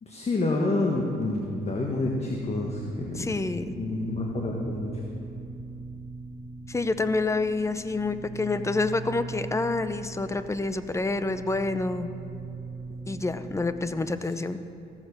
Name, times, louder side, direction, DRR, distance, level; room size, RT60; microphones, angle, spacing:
voice 1, 0.0-3.3 3.8-4.9, left 2 dB, 30° left, 0 dB, 1.4 m, -28 dB
sound 1, 2.3-14.1, right 4 dB, 20° right, 2.4 m, -41 dB
voice 2, 3.2-3.7 6.7-12.1 13.1-14.6, left 3 dB, 15° left, 11 dB, 0.6 m, -28 dB
15.0 x 7.3 x 6.6 m, 2.7 s
cardioid pair, 90°, 20 cm